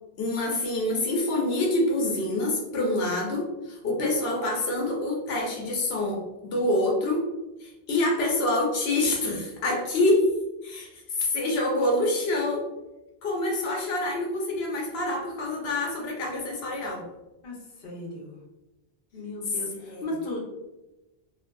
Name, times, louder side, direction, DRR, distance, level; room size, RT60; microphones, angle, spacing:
voice 1, 0.2-7.3 7.6-10.3 10.6-12.7 13.2-17.0 19.8-20.0, left 1 dB, 90° left, -1 dB, 0.9 m, -26 dB
voice 2, 17.4-18.4 19.1-20.4, left 1 dB, 65° left, -2 dB, 0.9 m, -36 dB
2.5 x 2.5 x 2.2 m, 0.99 s
omnidirectional pair, 1.0 m